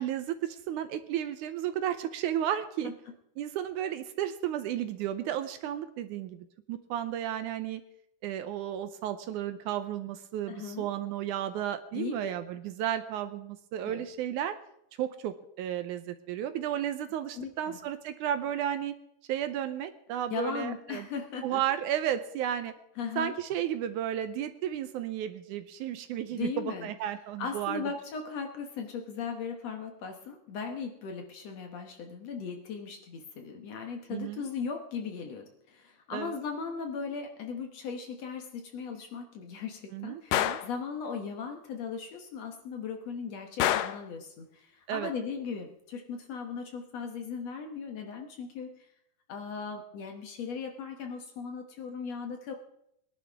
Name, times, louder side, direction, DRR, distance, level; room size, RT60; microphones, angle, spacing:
voice 1, 0.0-2.9 3.4-7.8 8.2-14.6 15.0-19.0 19.3-21.1 21.4-22.7 23.2-27.8 34.1-34.5 36.1-36.4 39.9-40.6 44.9-45.1, right 10 dB, 75° right, 11 dB, 2.0 m, -33 dB
voice 2, 10.5-10.9 11.9-12.3 13.8-14.1 17.3-17.8 20.3-21.6 23.0-23.4 26.3-26.9 27.4-48.9 49.3-52.5, left 5 dB, 60° left, 3 dB, 2.1 m, -38 dB
Gunshot gunfire, 40.3-40.7 43.6-44.1, left 12 dB, 90° left, 1.5 m, -27 dB
21.5 x 11.0 x 3.5 m, 0.77 s
omnidirectional pair, 3.9 m